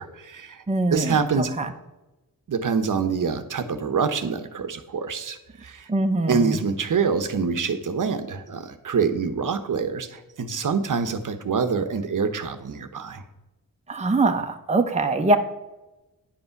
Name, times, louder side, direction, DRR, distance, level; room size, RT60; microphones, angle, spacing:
voice 1, 0.0-0.6 0.9-1.5 2.5-5.9 6.3-13.2, right 5 dB, 60° right, 9 dB, 1.0 m, -26 dB
voice 2, 0.7-1.7 5.9-6.6 13.9-15.4, right 2 dB, 20° right, 5 dB, 0.9 m, -23 dB
10.5 x 5.5 x 5.8 m, 1.0 s
cardioid pair, 70°, 36 cm